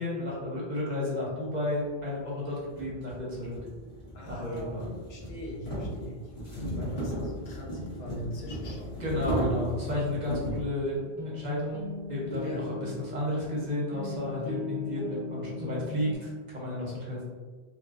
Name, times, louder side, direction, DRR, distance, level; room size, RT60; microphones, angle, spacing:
voice 1, 0.0-3.5 4.3-4.8 9.0-11.8 12.1-17.2, left 1 dB, 45° right, -6 dB, 0.8 m, -32 dB
sound 1, 1.9-2.0 2.7-10.7, right 1 dB, 40° left, 1.0 m, -35 dB
voice 2, 4.1-9.0 12.4-12.8, left 1 dB, 70° left, -2 dB, 0.8 m, -42 dB
sound 2, 11.0-16.1, left 3 dB, 10° right, 0.9 m, -38 dB
2.7 x 2.4 x 2.4 m, 1.4 s
omnidirectional pair, 1.1 m